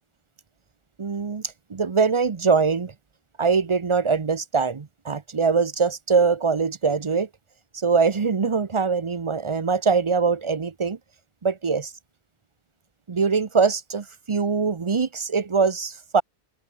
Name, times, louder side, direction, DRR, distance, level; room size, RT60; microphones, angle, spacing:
voice 1, 1.0-1.4 1.7-2.9 3.4-7.3 7.7-11.0 11.4-11.9 13.1-16.2, right 5 dB, 35° right, 0.7 m, -22 dB
omnidirectional pair, 1.1 m